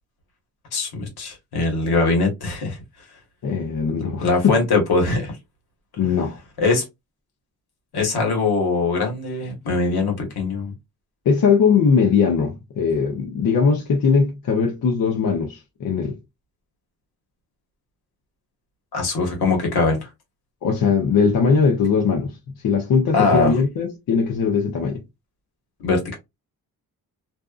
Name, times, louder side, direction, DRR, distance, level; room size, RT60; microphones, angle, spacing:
voice 1, 0.7-2.8 4.2-5.4 6.6-6.8 7.9-10.7 18.9-20.1 23.1-23.5 25.8-26.1, left 3 dB, 75° left, 1.3 m, -21 dB
voice 2, 3.4-4.6 6.0-6.4 11.3-16.2 20.6-22.4 22.6-25.0, left 5 dB, 60° left, 0.7 m, -20 dB
2.5 x 2.3 x 2.4 m
cardioid pair, 110°, 38 cm